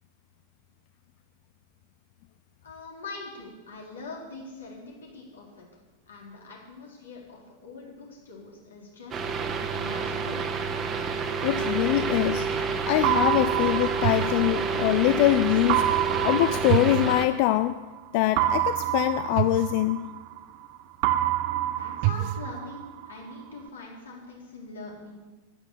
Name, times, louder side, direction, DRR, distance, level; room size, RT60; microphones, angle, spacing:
voice 1, 2.6-5.7 6.1-10.4 21.8-25.1, left 3 dB, 70° left, -2 dB, 3.9 m, -43 dB
sound 1, 9.1-17.3, right 5 dB, 25° right, 1.4 m, -29 dB
voice 2, 11.4-12.5 12.8-17.8 18.1-20.1, left 15 dB, 45° left, 12 dB, 0.4 m, -24 dB
sound 2, 13.0-15.1 15.7-17.8 18.4-20.7 21.0-23.1, right 14 dB, 45° right, 0.5 m, -27 dB
11.0 x 10.5 x 7.3 m, 1.2 s
figure-of-eight pair, 90°, 0 cm